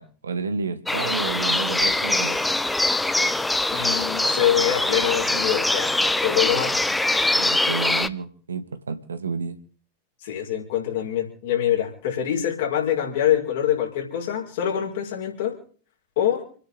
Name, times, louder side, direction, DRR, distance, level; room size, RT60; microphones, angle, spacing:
voice 1, 0.0-2.4 7.3-9.6, right 4 dB, 70° right, 9 dB, 1.6 m, -31 dB
sound 1, 0.9-8.1, left 2 dB, 5° left, 0.7 m, -23 dB
voice 2, 3.7-6.0 6.2-6.8 10.2-15.6 16.2-16.4, left 10 dB, 55° left, 0 dB, 5.4 m, -24 dB
29.5 x 10.0 x 3.9 m, 0.43 s
figure-of-eight pair, 90°, 0 cm